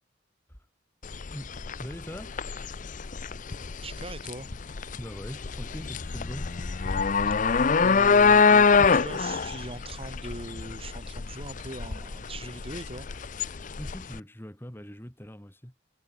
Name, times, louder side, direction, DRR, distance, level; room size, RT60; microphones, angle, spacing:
sound 1, 1.0-14.2, left 5 dB, 45° left, 0.6 m, -25 dB
voice 1, 1.8-2.4 5.0-6.5 13.8-15.7, equal, 10° left, 3.2 m, -41 dB
voice 2, 3.8-4.6 7.8-13.1 13.3-13.5, right 2 dB, 30° right, 4.6 m, -40 dB
head